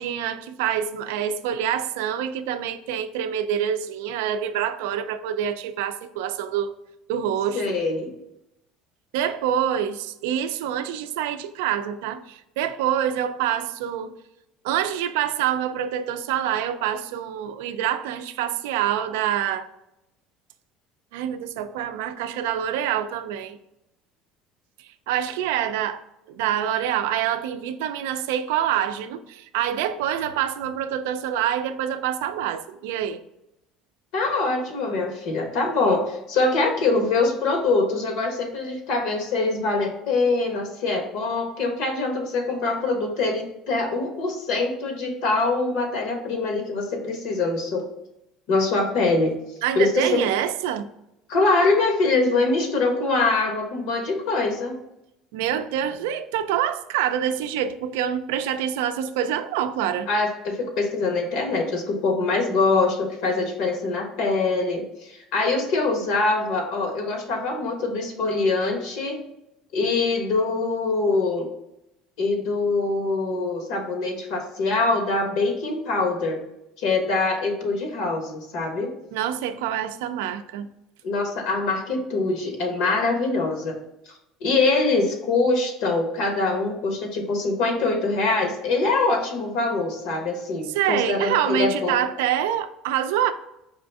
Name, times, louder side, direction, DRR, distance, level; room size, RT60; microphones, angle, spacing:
voice 1, 0.0-6.7 7.1-7.6 9.1-14.1 14.6-19.7 21.1-23.6 25.1-26.0 26.3-33.2 49.6-50.9 55.3-60.1 79.1-80.7 90.7-93.3, right 10 dB, 90° right, 0.3 m, -26 dB
voice 2, 7.5-8.1 34.1-47.9 48.5-49.4 49.7-50.2 51.3-54.8 60.1-69.2 69.7-71.5 72.2-76.4 76.8-78.9 81.0-83.8 84.4-92.0, left 3 dB, 75° left, 1.2 m, -24 dB
4.8 x 2.6 x 3.4 m
supercardioid pair, 115°, 0 cm